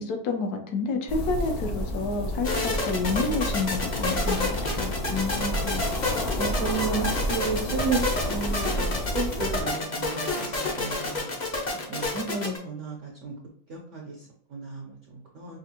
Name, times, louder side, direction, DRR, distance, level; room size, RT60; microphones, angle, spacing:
voice 1, 0.0-4.9, left 4 dB, 65° left, 4 dB, 1.1 m, -29 dB
sound 1, 1.1-9.6, equal, 85° left, 0.5 m, -30 dB
sound 2, 2.4-12.6, left 2 dB, 40° left, 0.6 m, -29 dB
voice 2, 5.1-5.9 6.4-8.0 8.3-11.3 11.9-13.3 13.7-15.6, right 3 dB, 75° right, -1 dB, 0.6 m, -33 dB
5.1 x 2.5 x 2.8 m, 0.65 s
omnidirectional pair, 2.0 m